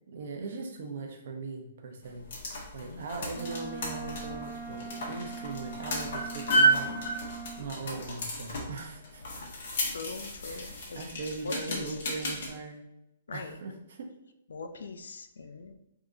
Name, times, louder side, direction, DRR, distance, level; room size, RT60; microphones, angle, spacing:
voice 1, 0.1-2.3 2.7-7.0 7.6-9.2 10.5-12.8 13.3-14.1, right 4 dB, 65° right, 4 dB, 0.9 m, -40 dB
sound 1, 2.0-12.5, right 2 dB, 60° left, 1.5 m, -32 dB
Wind instrument woodwind instrument, 3.3-7.7, right 6 dB, 25° right, 0.6 m, -42 dB
voice 2, 9.6-12.0 13.3-13.6 14.5-15.7, left 4 dB, 85° left, 8 dB, 0.4 m, -42 dB
3.8 x 2.8 x 3.8 m, 0.86 s
hypercardioid pair, 150°, 0 cm